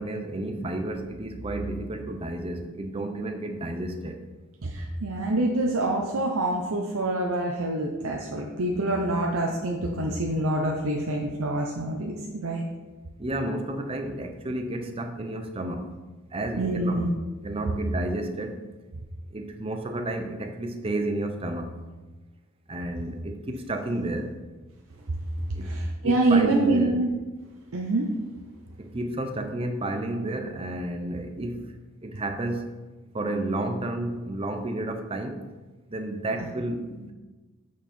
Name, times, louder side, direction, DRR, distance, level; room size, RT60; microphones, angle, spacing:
voice 1, 0.0-4.2 13.2-15.9 16.3-17.0 17.4-18.6 19.3-21.7 22.7-24.3 25.6-25.7 26.0-26.9 28.8-31.7 32.0-32.7 33.1-35.4 35.9-37.1, right 1 dB, 25° right, 6 dB, 0.6 m, -31 dB
voice 2, 4.6-12.6 16.6-17.1 25.6-27.1 27.7-28.1, right 2 dB, 75° right, 0 dB, 0.7 m, -26 dB
8.2 x 4.7 x 4.3 m, 1.2 s
head